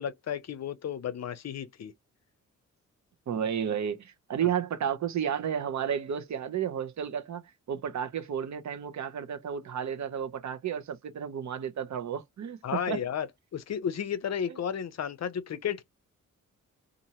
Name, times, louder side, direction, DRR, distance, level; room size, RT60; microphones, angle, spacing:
voice 1, 0.0-1.9 12.6-13.3 13.5-15.8, left 8 dB, 55° left, 0.6 m, -33 dB
voice 2, 3.3-7.4 7.7-13.0, right 8 dB, 60° right, 0.8 m, -32 dB
2.8 x 2.5 x 2.8 m
cardioid pair, 95°, 32 cm